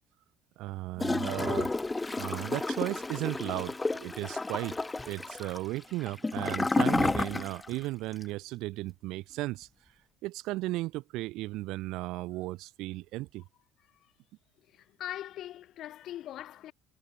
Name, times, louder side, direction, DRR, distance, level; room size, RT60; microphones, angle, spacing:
voice 1, 0.6-1.7 2.2-9.7 10.2-13.4, right 19 dB, 70° right, 0.6 m, -35 dB
Gurgling / Toilet flush, 1.0-7.8 8.1-8.2, left 2 dB, 10° left, 0.8 m, -31 dB
voice 2, 14.7-16.7, left 12 dB, 55° left, 2.3 m, -41 dB
cardioid pair, 135°, 0 cm